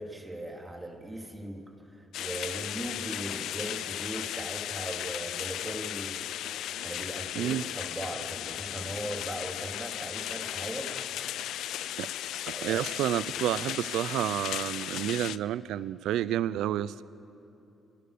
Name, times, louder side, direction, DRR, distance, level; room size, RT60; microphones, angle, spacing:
voice 1, 0.0-6.3 6.8-11.0 12.5-12.8 13.1-13.2, right 1 dB, 15° right, 2 dB, 3.6 m, -39 dB
sound 1, 2.1-15.4, left 12 dB, 85° left, 0.5 m, -36 dB
voice 2, 12.5-17.0, right 12 dB, 85° right, 17 dB, 0.7 m, -30 dB
29.0 x 24.0 x 6.9 m, 2.9 s
cardioid pair, 90°, 0 cm